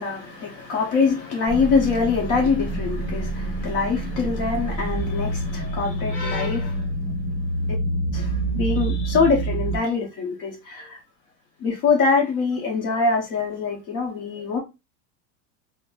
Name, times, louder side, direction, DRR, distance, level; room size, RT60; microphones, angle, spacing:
voice 1, 0.0-6.8 8.1-11.0 11.6-14.6, left 4 dB, 45° left, 0.8 m, -24 dB
sound 1, 1.5-9.8, right 2 dB, 25° right, 0.7 m, -27 dB
3.8 x 2.1 x 2.3 m
supercardioid pair, 165°, 46 cm